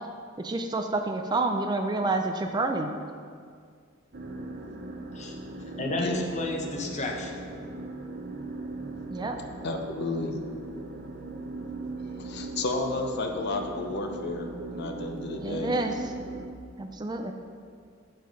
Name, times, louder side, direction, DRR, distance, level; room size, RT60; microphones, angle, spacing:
voice 1, 0.4-3.0 9.1-9.4 15.4-16.1 16.8-17.3, right 2 dB, 20° right, 5 dB, 0.4 m, -29 dB
sound 1, 4.1-16.5, right 2 dB, 50° right, 0.7 m, -39 dB
voice 2, 5.8-7.4, left 2 dB, 35° left, 0 dB, 0.9 m, -32 dB
voice 3, 9.6-10.3 12.2-15.7, left 2 dB, 55° left, 4 dB, 0.7 m, -32 dB
7.7 x 5.2 x 5.2 m, 2.1 s
head